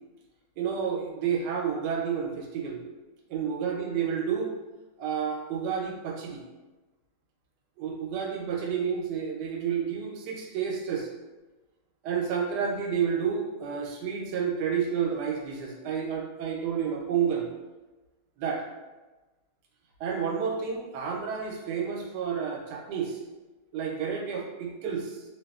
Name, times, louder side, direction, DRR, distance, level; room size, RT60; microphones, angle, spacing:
voice 1, 0.6-2.8 3.3-4.6 5.0-6.4 7.8-11.1 12.0-17.5 18.4-18.7 20.0-23.2 23.7-25.2, right 7 dB, 85° right, 0 dB, 1.2 m, -30 dB
2.8 x 2.5 x 2.3 m, 1.2 s
omnidirectional pair, 1.7 m